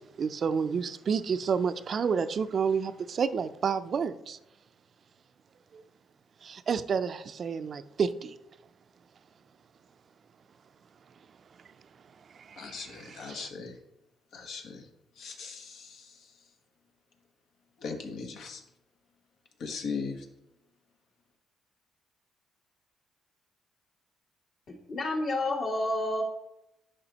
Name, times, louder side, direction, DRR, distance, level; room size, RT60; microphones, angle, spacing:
voice 1, 0.2-4.4 5.7-5.8 6.4-8.4 12.3-13.5, right 6 dB, 50° right, 0.4 m, -30 dB
voice 2, 12.6-13.7 14.3-14.8 15.2-16.1 17.8-18.6 19.6-20.2, left 5 dB, 75° left, 1.1 m, -38 dB
voice 3, 24.7-26.2, left 2 dB, 60° left, 2.1 m, -30 dB
11.0 x 5.2 x 2.9 m
cardioid pair, 90°, 0 cm